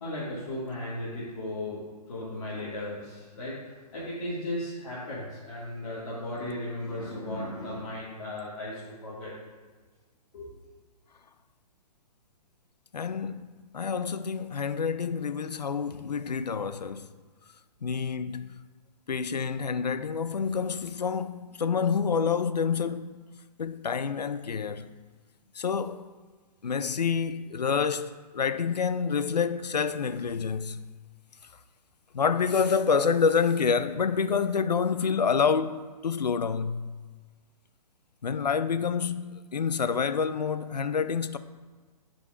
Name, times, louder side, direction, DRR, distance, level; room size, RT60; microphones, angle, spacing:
voice 1, 0.0-9.3 10.3-10.5, left 1 dB, 50° left, 2.0 m, -36 dB
voice 2, 12.9-13.4 13.7-17.1 17.8-18.5 19.1-23.1 23.6-24.9 25.6-26.1 26.6-30.8 32.1-36.9 38.2-41.4, left 6 dB, 80° left, 0.4 m, -28 dB
11.0 x 5.1 x 2.5 m
figure-of-eight pair, 125°, 21 cm